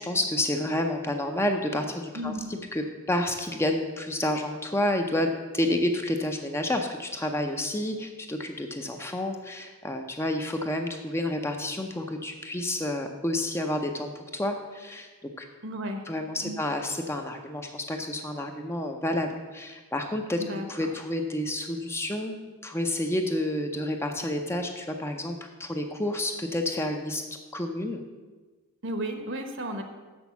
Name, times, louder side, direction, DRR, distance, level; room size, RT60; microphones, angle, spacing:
voice 1, 0.0-15.5 16.1-22.4 22.6-27.2 27.5-28.0, left 1 dB, 10° left, 4 dB, 0.5 m, -30 dB
voice 2, 2.1-2.5 15.6-16.0 16.4-16.6 20.4-20.9 28.8-29.8, right 1 dB, 55° right, 6 dB, 1.0 m, -34 dB
6.8 x 6.2 x 7.0 m, 1.3 s
head